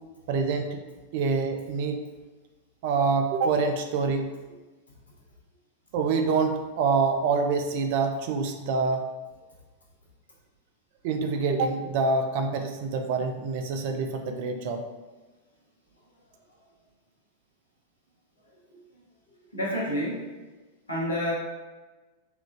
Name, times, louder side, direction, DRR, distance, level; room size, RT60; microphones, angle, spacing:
voice 1, 0.3-0.8 1.1-2.0 2.8-4.3 5.9-9.1 11.0-14.8, right 4 dB, 50° right, 5 dB, 0.4 m, -26 dB
voice 2, 19.5-20.3 20.9-21.3, equal, 80° left, -5 dB, 0.9 m, -28 dB
3.8 x 2.3 x 2.5 m, 1.2 s
figure-of-eight pair, 90°, 0 cm